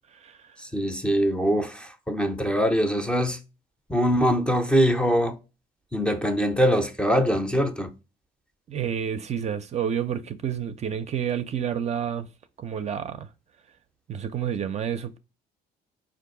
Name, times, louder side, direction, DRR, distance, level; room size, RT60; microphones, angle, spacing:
voice 1, 0.6-3.4 3.9-5.4 5.9-7.9, equal, 5° left, 0.6 m, -23 dB
voice 2, 8.7-12.3 12.6-13.3 14.1-15.2, right 8 dB, 40° right, 0.5 m, -29 dB
4.5 x 2.5 x 3.7 m
cardioid pair, 110°, 17 cm